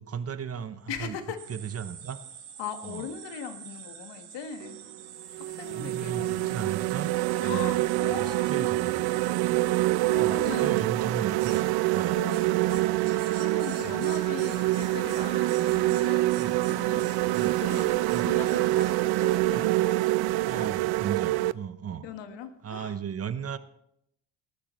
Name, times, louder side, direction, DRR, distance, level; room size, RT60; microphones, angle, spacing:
voice 1, 0.0-1.2 1.5-2.2 2.8-3.1 5.7-7.1 7.4-9.0 10.2-12.2 13.8-14.1 16.4-16.6 17.3-17.6 18.1-18.4 19.5-19.7 20.4-22.1 22.6-23.6, right 7 dB, 30° right, 13 dB, 0.9 m, -36 dB
voice 2, 0.9-1.4 2.6-4.8 5.4-6.7 7.4-8.8 9.6-10.9 12.1-16.3 16.7-20.0 20.3-20.7 22.0-22.9, left 7 dB, 60° left, 8 dB, 1.7 m, -40 dB
sound 1, 1.4-19.4, right 6 dB, 75° right, 3.9 m, -45 dB
sound 2, 4.6-4.8 5.3-21.5, right 17 dB, 55° right, 0.5 m, -26 dB
18.5 x 10.0 x 3.1 m, 0.75 s
supercardioid pair, 80°, 48 cm